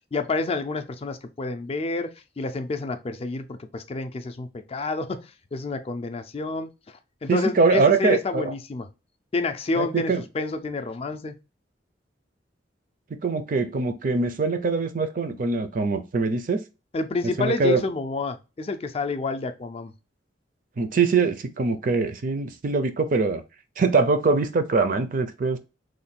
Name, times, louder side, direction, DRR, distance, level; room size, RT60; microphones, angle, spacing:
voice 1, 0.1-2.1 2.4-6.7 7.2-8.9 9.3-11.3 16.9-19.9, left 3 dB, 30° left, 0.4 m, -29 dB
voice 2, 7.3-8.5 9.8-10.2 13.2-16.6 17.2-17.8 20.8-23.4 23.8-25.6, right 4 dB, 45° right, 0.4 m, -23 dB
3.1 x 2.2 x 4.1 m
head